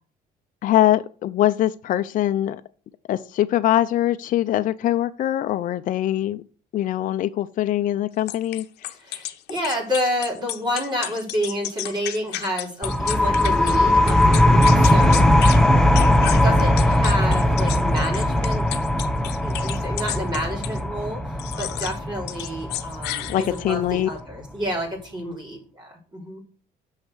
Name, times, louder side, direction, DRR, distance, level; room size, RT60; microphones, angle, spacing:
voice 1, 0.6-2.6 3.1-6.4 6.7-8.9 23.3-24.1, left 13 dB, 55° left, 0.5 m, -22 dB
sound 1, 8.3-13.8 14.1-15.6 15.9-20.8 21.4-22.0 22.3-23.7, left 14 dB, 80° left, 0.7 m, -32 dB
voice 2, 8.9-18.7 19.4-26.4, equal, 25° right, 3.9 m, -29 dB
sound 2, 12.8-24.2, left 1 dB, 5° left, 0.7 m, -19 dB
6.6 x 5.7 x 6.2 m
cardioid pair, 110°, 17 cm